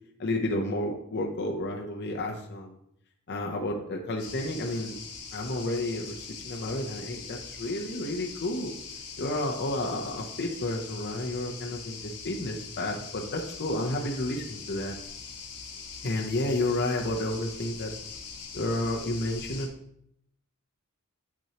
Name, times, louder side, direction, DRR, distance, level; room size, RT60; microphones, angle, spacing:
voice 1, 0.2-2.7 3.3-5.0 5.3-8.7 9.2-15.0 16.0-17.9 18.5-19.7, left 1 dB, 50° left, 0 dB, 0.7 m, -31 dB
sound 1, 4.2-19.7, left 5 dB, 85° left, 1.2 m, -42 dB
7.8 x 6.0 x 2.9 m, 0.73 s
head